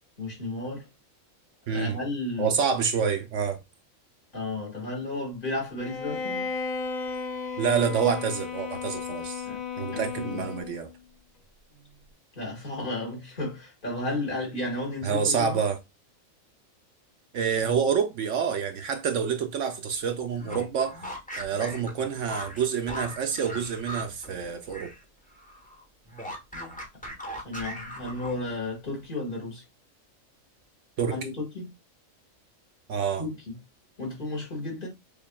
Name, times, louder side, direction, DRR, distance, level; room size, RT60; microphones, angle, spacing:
voice 1, 0.2-0.9 1.7-2.5 4.3-6.5 9.4-9.6 9.9-10.4 12.3-15.6 27.4-29.6 31.1-31.7 33.2-33.5 34.0-34.9, left 2 dB, 40° left, 2.0 m, -33 dB
voice 2, 1.7-2.0 2.4-3.6 7.6-9.4 9.8-10.9 15.0-15.8 17.3-20.9 21.4-24.9 31.0-31.2 32.9-33.2, right 6 dB, 70° right, 1.0 m, -27 dB
Bowed string instrument, 5.8-10.9, left 5 dB, 80° left, 1.6 m, -34 dB
sound 1, 20.3-25.0 25.3-28.6, equal, 5° left, 0.9 m, -39 dB
6.8 x 2.7 x 2.3 m
omnidirectional pair, 1.4 m